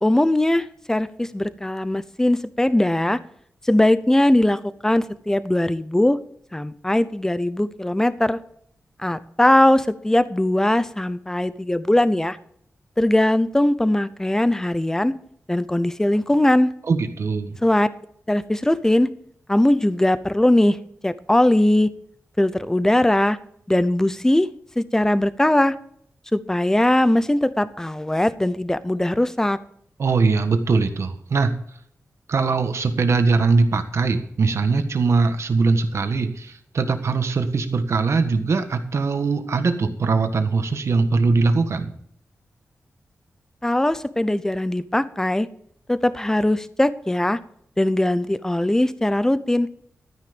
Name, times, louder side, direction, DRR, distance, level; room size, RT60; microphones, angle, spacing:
voice 1, 0.0-3.2 3.6-6.2 6.5-8.4 9.0-12.4 13.0-15.1 15.5-16.7 17.6-17.9 18.3-19.1 19.5-20.8 21.0-21.9 22.4-23.4 23.7-24.5 24.8-25.7 26.3-29.6 43.6-45.5 45.9-47.4 47.8-49.7, left 1 dB, 10° left, 14 dB, 0.7 m, -20 dB
voice 2, 16.9-17.6 30.0-31.6 32.3-41.9, right 4 dB, 65° right, 8 dB, 1.5 m, -21 dB
13.0 x 9.7 x 5.1 m, 0.68 s
wide cardioid pair, 125°, 5 cm